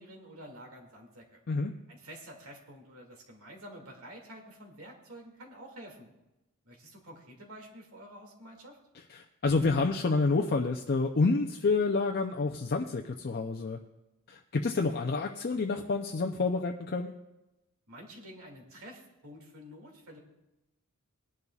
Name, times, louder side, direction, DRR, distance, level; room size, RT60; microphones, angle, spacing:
voice 1, 0.0-1.4 1.9-6.1 6.6-8.8 17.9-20.2, equal, 75° right, 0 dB, 2.4 m, -49 dB
voice 2, 9.1-13.8 14.3-17.1, left 3 dB, 45° left, 3 dB, 0.5 m, -28 dB
19.5 x 11.0 x 2.4 m, 0.98 s
head